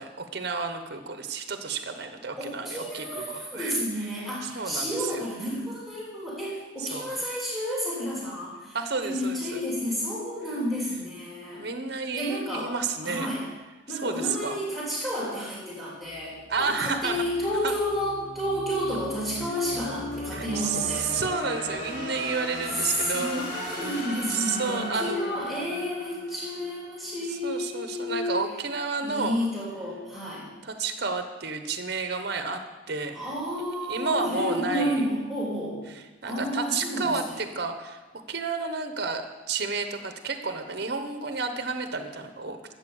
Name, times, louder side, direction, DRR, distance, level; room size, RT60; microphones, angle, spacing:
voice 1, 0.0-3.8 4.2-5.2 6.8-7.1 8.7-9.6 11.6-13.3 13.9-14.6 16.5-17.2 17.6-17.7 20.3-23.7 24.3-25.2 27.3-29.4 30.6-32.6 32.9-33.3 33.9-35.1 35.9-42.6, right 4 dB, 50° right, 7 dB, 1.1 m, -31 dB
voice 2, 2.4-8.8 9.0-11.7 12.1-12.7 13.0-13.4 13.9-21.1 22.8-28.4 29.0-30.5 33.1-35.8 36.2-37.2, equal, ahead, -5 dB, 3.0 m, -31 dB
sound 1, 16.1-27.1, left 1 dB, 45° left, 2.9 m, -37 dB
13.0 x 7.7 x 7.1 m, 1.2 s
head